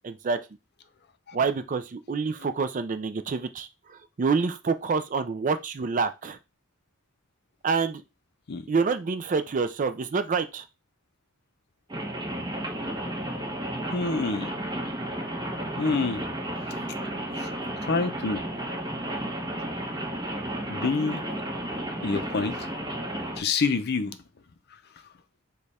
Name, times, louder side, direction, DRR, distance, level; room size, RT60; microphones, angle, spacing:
voice 1, 0.0-0.4 1.3-6.4 7.6-8.0 8.7-10.7, right 5 dB, 40° right, 0.4 m, -27 dB
Rain, 11.9-23.4, right 1 dB, 20° right, 1.2 m, -33 dB
voice 2, 13.9-14.5 15.8-16.2 17.4-17.5 17.8-18.4 20.7-21.2 22.0-22.7 23.4-24.2, left 4 dB, 50° left, 0.5 m, -27 dB
4.9 x 2.3 x 4.1 m
head